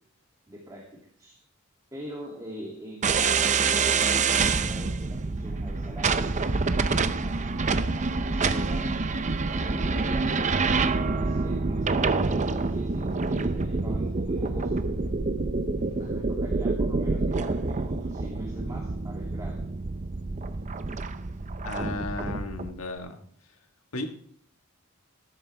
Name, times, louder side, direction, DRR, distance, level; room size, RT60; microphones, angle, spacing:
voice 1, 0.5-1.4 1.9-6.2 6.9-9.0 9.5-14.7 16.0-19.6, equal, 15° right, -3 dB, 2.7 m, -43 dB
sound 1, 3.0-22.7, right 4 dB, 35° right, 0.6 m, -27 dB
voice 2, 21.6-23.2 23.9-24.1, left 2 dB, 80° left, 5 dB, 1.6 m, -34 dB
14.0 x 12.5 x 3.4 m, 0.62 s
head